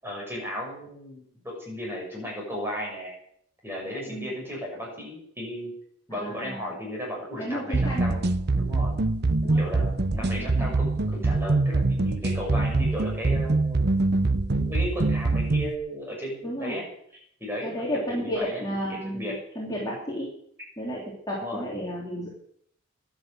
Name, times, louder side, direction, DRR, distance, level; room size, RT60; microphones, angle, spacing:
voice 1, 0.0-3.1 3.6-5.7 6.1-9.0 9.5-13.9 14.1-16.8 17.4-17.8 18.1-18.6 18.9-19.3 21.4-21.6, equal, 10° right, -2 dB, 6.2 m, -35 dB
voice 2, 6.1-6.7 7.4-8.0 9.4-9.6 10.1-10.7 11.2-11.3 16.4-16.8 17.6-20.3 20.8-22.3, equal, 15° left, -5 dB, 3.4 m, -32 dB
sound 1, 7.7-15.8, right 3 dB, 50° right, 0.8 m, -24 dB
11.5 x 11.5 x 8.0 m, 0.68 s
head